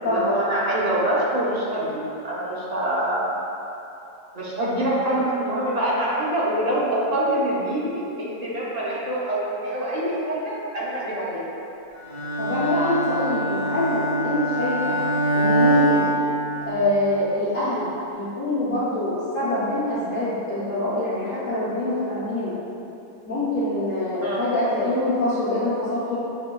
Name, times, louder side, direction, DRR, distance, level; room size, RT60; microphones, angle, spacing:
voice 1, 0.0-3.2 4.3-11.4 24.2-24.4, right 1 dB, 45° right, -8 dB, 0.5 m, -25 dB
Bowed string instrument, 12.1-17.1, right 1 dB, 40° left, 0.5 m, -23 dB
voice 2, 12.4-15.0 15.3-16.1 16.7-22.5 23.2-26.2, left 1 dB, 60° left, -12 dB, 1.2 m, -25 dB
6.9 x 2.8 x 2.2 m, 2.9 s
omnidirectional pair, 1.7 m